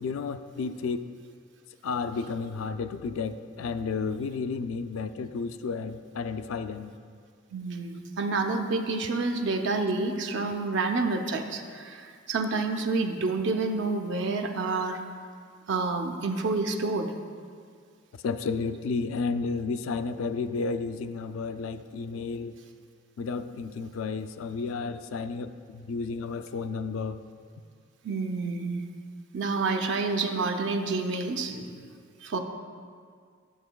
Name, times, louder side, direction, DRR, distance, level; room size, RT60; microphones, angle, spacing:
voice 1, 0.0-1.0 1.8-6.9 18.2-22.6 23.2-27.2, left 4 dB, 70° left, 10 dB, 0.3 m, -32 dB
voice 2, 7.5-15.0 15.7-17.1 28.0-28.8 29.3-31.9 32.2-32.4, right 3 dB, 60° right, 4 dB, 0.5 m, -29 dB
12.5 x 6.7 x 2.3 m, 2.1 s
head